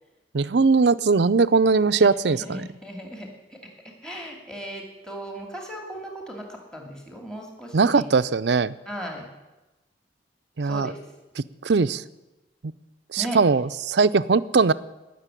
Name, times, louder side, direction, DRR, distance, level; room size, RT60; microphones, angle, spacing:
voice 1, 0.3-2.6 7.7-8.7 10.6-10.9 11.6-12.0 12.6-12.7 13.1-14.7, right 4 dB, 70° right, 14 dB, 0.6 m, -20 dB
voice 2, 2.4-3.6 3.8-8.1 8.9-9.3 10.6-11.0 13.2-13.4, equal, 5° left, 1 dB, 2.6 m, -37 dB
19.0 x 6.8 x 9.8 m, 1.1 s
head